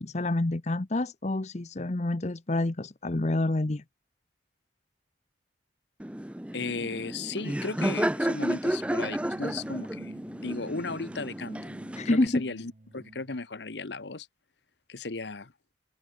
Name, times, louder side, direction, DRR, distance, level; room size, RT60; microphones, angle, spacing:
voice 1, 0.0-3.8 12.0-12.4, left 2 dB, 40° left, 0.8 m, -28 dB
Laughter, 6.0-12.3, right 1 dB, 5° right, 0.5 m, -32 dB
voice 2, 6.5-11.6 12.0-14.3 14.9-15.5, left 3 dB, 75° left, 1.1 m, -36 dB
sound 1, 8.7-13.4, right 1 dB, 45° right, 1.0 m, -48 dB
head